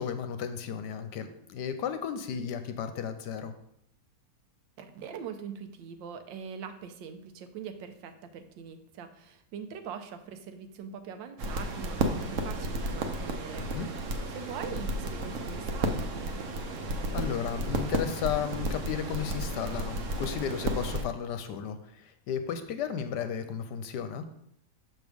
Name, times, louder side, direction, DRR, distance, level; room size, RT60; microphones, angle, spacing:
voice 1, 0.0-3.5 13.6-13.9 17.1-24.3, left 7 dB, 75° left, 9 dB, 1.1 m, -34 dB
voice 2, 4.8-13.7 14.3-16.4, right 7 dB, 85° right, 8 dB, 1.4 m, -42 dB
sound 1, 11.4-21.0, right 1 dB, 60° right, 0.9 m, -32 dB
6.3 x 6.2 x 3.5 m, 0.73 s
omnidirectional pair, 2.0 m